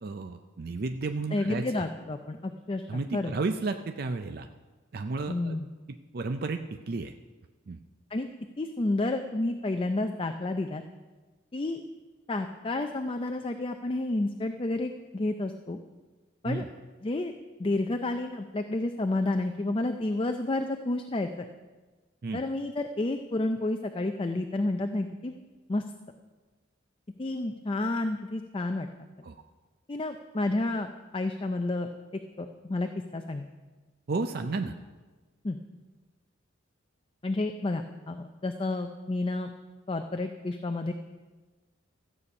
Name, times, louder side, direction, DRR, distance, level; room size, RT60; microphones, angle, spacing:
voice 1, 0.0-1.8 2.9-4.5 4.9-5.6 5.9-7.1 7.7-7.8 16.4-16.7 22.2-22.4 29.2-29.4 34.1-34.7, right 3 dB, 50° right, 7 dB, 0.5 m, -32 dB
voice 2, 1.3-3.3 5.3-5.7 8.1-8.3 8.6-10.8 11.5-11.8 12.3-15.8 16.4-16.6 17.0-17.3 17.6-21.5 22.3-25.4 25.7-25.8 27.2-28.9 29.9-31.9 32.4-33.5 35.4-35.6 37.2-39.5 39.9-40.9, left 2 dB, 25° left, 6 dB, 0.4 m, -30 dB
13.5 x 8.5 x 5.3 m, 1.3 s
head